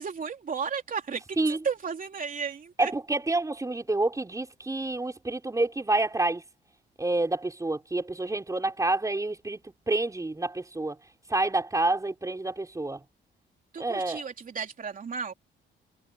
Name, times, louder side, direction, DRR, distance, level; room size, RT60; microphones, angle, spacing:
voice 1, 0.0-2.9 13.7-15.3, right 6 dB, 45° right, 3.3 m, -34 dB
voice 2, 2.8-6.4 7.0-9.6 9.9-11.0 11.3-13.0 13.8-14.2, right 2 dB, 15° right, 5.0 m, -28 dB
cardioid pair, 90°, 20 cm